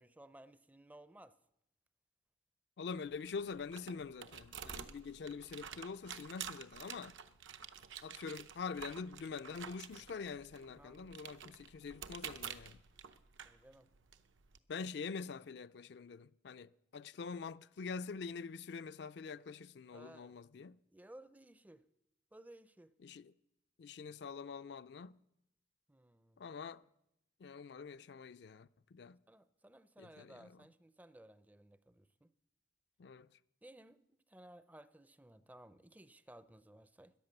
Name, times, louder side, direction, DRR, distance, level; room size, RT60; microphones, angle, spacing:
voice 1, 0.0-1.4 10.8-11.2 13.4-13.9 19.9-20.4 20.9-21.8 22.3-22.9 25.9-26.5 29.3-32.3 33.6-34.0 34.3-37.1, right 1 dB, 10° right, 0.4 m, -58 dB
voice 2, 2.8-7.2 8.0-12.8 14.7-20.8 23.0-23.3 23.8-25.2 26.4-26.8 27.4-29.2 30.0-30.6 33.0-33.3, left 5 dB, 60° left, 0.4 m, -45 dB
sound 1, 2.9-14.6, right 8 dB, 80° right, 0.7 m, -50 dB
14.0 x 10.5 x 6.6 m
head